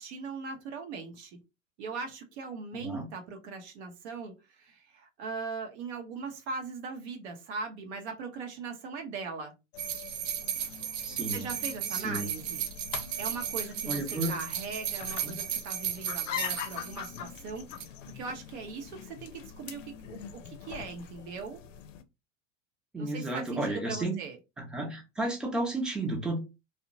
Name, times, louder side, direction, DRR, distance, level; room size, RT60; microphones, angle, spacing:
voice 1, 0.0-1.4 1.8-9.5 11.3-12.6 13.2-21.6 23.0-24.4, right 4 dB, 60° right, 0.8 m, -40 dB
voice 2, 2.7-3.1 11.0-11.4 11.9-12.3 13.9-14.4 15.2-15.3 22.9-24.2 24.6-26.4, right 2 dB, ahead, 0.8 m, -32 dB
sound 1, 9.7-22.0, left 9 dB, 75° left, 0.5 m, -43 dB
sound 2, 9.8-17.4 17.7-17.8, right 9 dB, 40° right, 0.5 m, -35 dB
2.7 x 2.1 x 2.6 m
hypercardioid pair, 80°, 38 cm